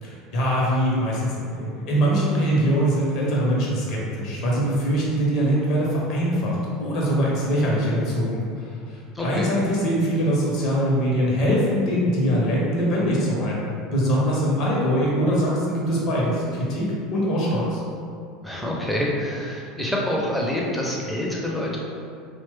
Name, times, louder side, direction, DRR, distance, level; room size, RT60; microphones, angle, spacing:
voice 1, 0.0-17.8, equal, 50° left, -4 dB, 0.7 m, -23 dB
voice 2, 9.1-9.5 18.4-21.8, left 1 dB, 5° left, -3 dB, 0.6 m, -26 dB
2.9 x 2.1 x 3.2 m, 2.4 s
figure-of-eight pair, 70°, 0 cm